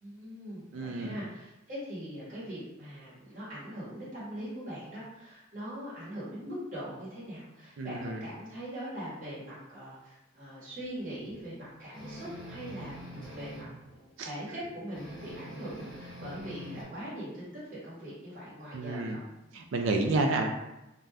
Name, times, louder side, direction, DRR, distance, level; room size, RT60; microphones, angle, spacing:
voice 1, 0.0-19.2, equal, 45° right, -10 dB, 1.2 m, -41 dB
voice 2, 0.7-1.2 7.8-8.2 14.2-14.3 18.7-19.2 19.5-20.5, right 2 dB, 80° right, 4 dB, 0.4 m, -30 dB
sound 1, 11.9-13.8 14.9-16.8, equal, 5° left, 1.0 m, -44 dB
2.5 x 2.1 x 3.3 m, 0.96 s
head